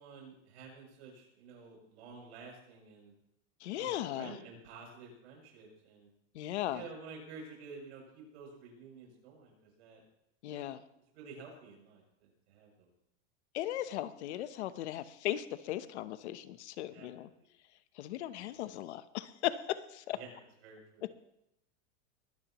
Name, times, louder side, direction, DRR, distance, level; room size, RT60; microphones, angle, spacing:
voice 1, 0.0-3.1 3.7-3.9 4.1-6.1 6.7-10.0 10.5-10.7 11.1-12.9 16.9-17.1 18.4-18.5 20.1-20.3 20.6-21.0, right 4 dB, 60° right, -1 dB, 7.6 m, -51 dB
voice 2, 3.6-4.4 6.3-6.8 10.4-10.8 13.5-17.3 18.0-20.2, left 13 dB, 65° left, 13 dB, 1.0 m, -37 dB
22.0 x 17.0 x 3.1 m, 0.80 s
supercardioid pair, 180°, 36 cm